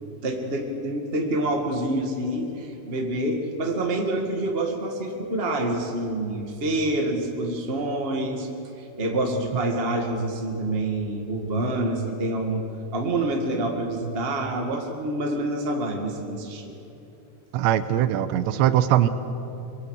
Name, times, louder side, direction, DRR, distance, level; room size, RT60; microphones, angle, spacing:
voice 1, 0.2-8.5 8.8-12.6 12.9-16.8, right 1 dB, 50° right, 1 dB, 0.7 m, -27 dB
voice 2, 17.5-19.1, right 12 dB, 80° right, 12 dB, 3.1 m, -21 dB
25.0 x 23.5 x 6.6 m, 2.9 s
omnidirectional pair, 5.1 m